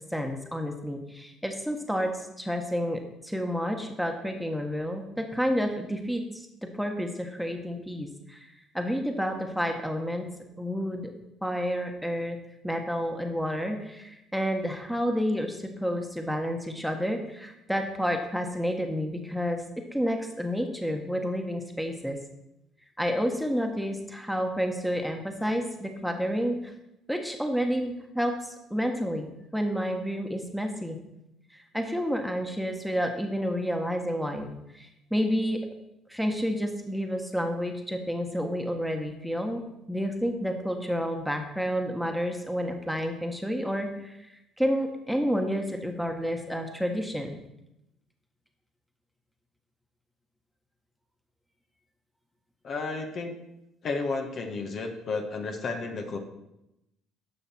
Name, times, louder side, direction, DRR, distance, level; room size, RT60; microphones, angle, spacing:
voice 1, 0.1-2.1 2.4-6.5 6.8-8.5 8.7-10.2 10.6-11.1 11.4-12.4 12.6-19.6 19.9-22.2 23.0-26.7 27.1-28.3 28.7-29.3 29.5-31.0 31.7-34.5 34.7-35.6 36.1-39.6 39.9-44.2 44.6-47.3, equal, ahead, 4 dB, 1.5 m, -30 dB
voice 2, 52.6-53.4 53.8-56.2, left 3 dB, 50° left, 4 dB, 1.5 m, -32 dB
12.5 x 5.7 x 4.5 m, 0.88 s
hypercardioid pair, 60°, 0 cm